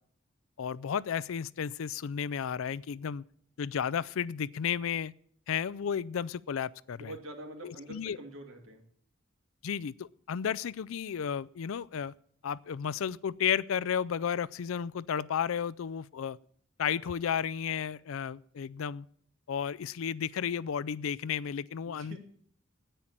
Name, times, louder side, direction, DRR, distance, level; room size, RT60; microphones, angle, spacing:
voice 1, 0.6-3.2 3.6-5.1 5.5-7.1 7.6-8.2 9.6-12.1 12.4-16.4 16.8-19.1 19.5-22.2, left 7 dB, 80° left, 0.4 m, -33 dB
voice 2, 6.9-8.8 21.9-22.2, right 1 dB, 75° right, 2.4 m, -45 dB
10.0 x 9.0 x 8.6 m
head